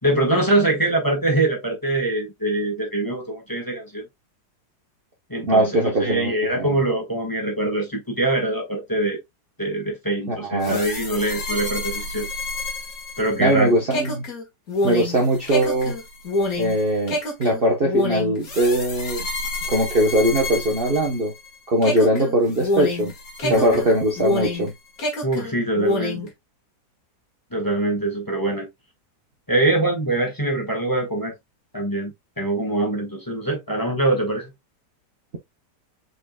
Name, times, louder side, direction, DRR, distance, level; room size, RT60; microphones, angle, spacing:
voice 1, 0.0-4.1 5.3-9.2 9.6-12.3 13.2-13.7 23.4-23.8 25.2-26.3 27.5-28.7 29.5-31.3 31.7-34.5, right 2 dB, 15° left, 1.4 m, -23 dB
voice 2, 5.4-6.8 10.3-10.8 13.4-14.3 14.8-16.0 16.6-19.3 19.7-21.3 21.7-23.1 23.5-24.7, right 1 dB, 40° right, 0.9 m, -21 dB
sound 1, 10.6-21.5 21.8-24.7 25.0-26.3, left 2 dB, 55° left, 2.0 m, -28 dB
4.9 x 4.7 x 2.2 m
omnidirectional pair, 1.8 m